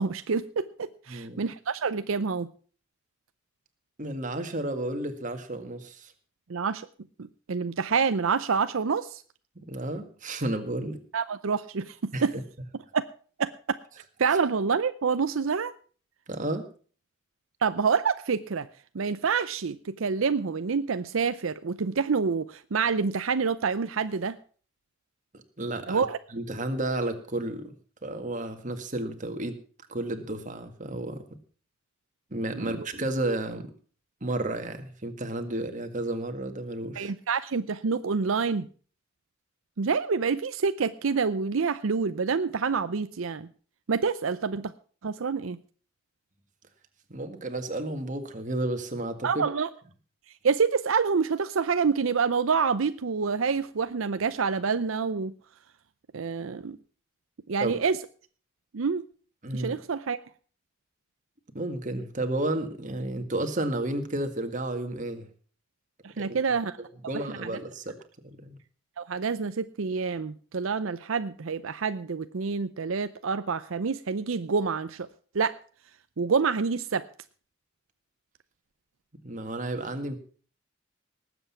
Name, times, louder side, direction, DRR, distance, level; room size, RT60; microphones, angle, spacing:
voice 1, 0.0-2.5 6.5-6.9 7.2-9.2 11.1-12.3 12.9-13.0 13.4-13.5 14.2-15.7 17.6-18.7 18.9-24.4 25.9-26.2 32.5-32.8 37.0-38.7 39.8-43.5 43.9-44.7 45.0-45.6 49.2-49.7 50.4-55.3 56.1-56.8 57.5-58.0 58.7-59.0 59.5-60.2 66.0-66.8 67.3-67.5 69.0-75.1 75.3-75.6 76.2-77.0, right 5 dB, 80° right, 12 dB, 0.6 m, -27 dB
voice 2, 1.1-1.4 4.0-6.1 9.6-11.0 12.1-12.2 16.3-16.6 25.3-26.0 26.3-27.7 28.0-29.6 29.9-31.2 32.3-33.7 34.2-37.1 47.1-49.3 57.6-57.8 59.4-59.7 61.5-65.3 66.2-66.4 66.8-68.0 68.2-68.6 79.2-80.2, right 1 dB, 40° right, 6 dB, 1.8 m, -32 dB
19.0 x 8.0 x 5.7 m, 0.42 s
head